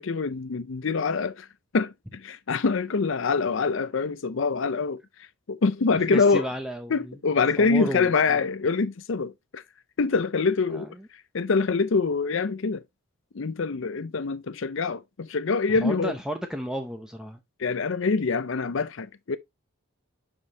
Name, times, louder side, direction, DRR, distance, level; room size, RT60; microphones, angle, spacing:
voice 1, 0.0-1.5 1.7-5.0 5.5-6.5 6.9-9.6 10.0-10.9 11.3-12.8 13.3-16.1 17.6-19.4, left 4 dB, 60° left, 0.5 m, -25 dB
voice 2, 5.9-7.2 7.6-8.4 10.7-11.1 15.7-17.4, equal, 5° right, 0.6 m, -33 dB
9.5 x 5.3 x 2.8 m
head